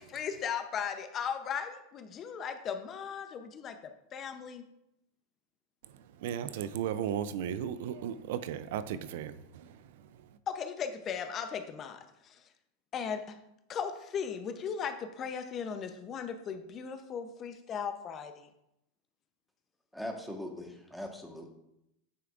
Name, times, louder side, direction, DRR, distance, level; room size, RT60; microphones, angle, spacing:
voice 1, 0.0-3.8 4.1-4.6 10.5-12.4 12.9-13.4 13.7-18.5, left 7 dB, 35° left, 8 dB, 0.7 m, -37 dB
voice 2, 5.8-10.4, right 9 dB, 70° right, 13 dB, 0.4 m, -36 dB
voice 3, 19.9-21.5, left 1 dB, ahead, 2 dB, 1.3 m, -40 dB
9.4 x 5.7 x 2.5 m, 0.83 s
hypercardioid pair, 105°, 0 cm